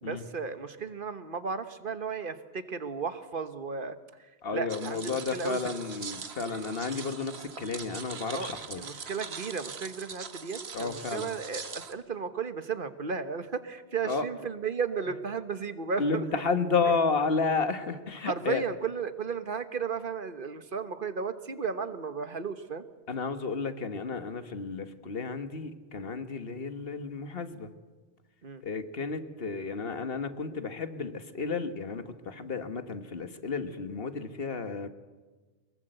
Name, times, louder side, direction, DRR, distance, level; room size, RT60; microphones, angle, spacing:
voice 1, 0.0-4.0 4.5-5.8 8.3-16.3 18.2-22.8 28.4-28.6, right 5 dB, 55° right, 11 dB, 1.4 m, -34 dB
voice 2, 4.4-8.8 10.7-11.3 14.0-14.2 16.0-18.6 23.1-27.7 28.6-34.9, left 4 dB, 65° left, 10 dB, 1.7 m, -32 dB
sound 1, 4.7-11.9, right 5 dB, 75° right, 1.6 m, -42 dB
24.0 x 21.5 x 7.9 m, 1.3 s
omnidirectional pair, 1.1 m